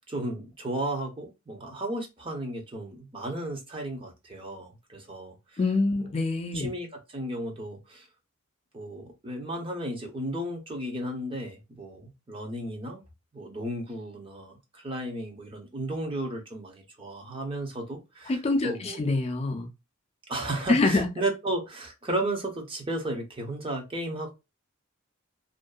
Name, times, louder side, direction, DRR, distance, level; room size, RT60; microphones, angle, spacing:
voice 1, 0.0-5.6 6.5-8.1 8.7-13.0 13.3-19.0 20.3-24.3, right 1 dB, 25° right, 0.6 m, -34 dB
voice 2, 5.6-6.7 18.3-19.7 20.7-21.1, left 3 dB, 30° left, 0.3 m, -25 dB
2.5 x 2.2 x 2.2 m
head